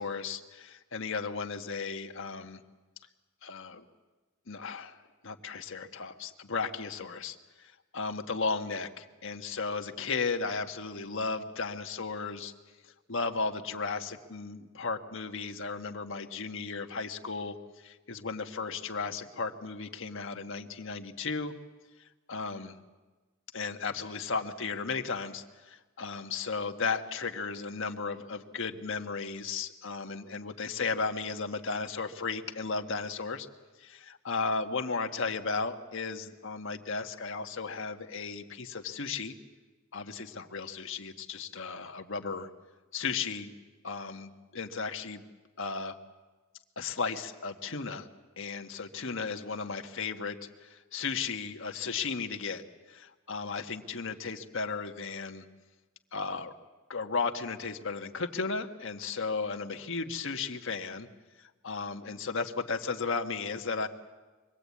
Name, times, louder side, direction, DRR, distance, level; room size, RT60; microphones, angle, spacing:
voice 1, 0.0-2.6 3.4-3.8 4.5-12.5 12.8-21.5 22.0-22.7 23.5-33.5 33.8-39.4 39.9-42.5 42.9-43.5 43.8-45.2 45.6-45.9 46.8-48.1 48.4-55.4 56.1-56.5 56.9-61.1 61.4-63.9, left 4 dB, 65° left, 5 dB, 1.5 m, -35 dB
24.5 x 20.0 x 8.4 m, 1.3 s
head